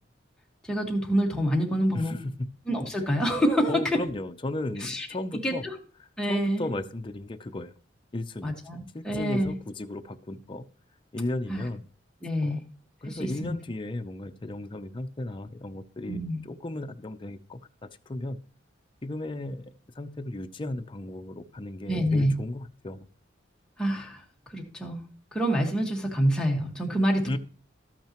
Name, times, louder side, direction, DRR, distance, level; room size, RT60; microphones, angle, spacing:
voice 1, 0.7-2.1 2.7-3.8 4.8-5.1 5.4-5.7 6.2-6.7 8.4-9.5 11.5-11.6 12.2-12.6 13.1-13.5 16.1-16.4 21.9-22.3 23.8-24.2 24.5-25.0 25.3-27.4, equal, 5° left, -1 dB, 1.5 m, -26 dB
voice 2, 1.9-2.3 3.7-5.7 6.0-7.7 8.1-8.5 8.9-10.7 11.1-11.8 12.4-12.6 13.0-18.4 19.0-23.1 27.2-27.4, left 1 dB, 25° left, 7 dB, 0.5 m, -35 dB
12.5 x 8.8 x 3.0 m, 0.40 s
head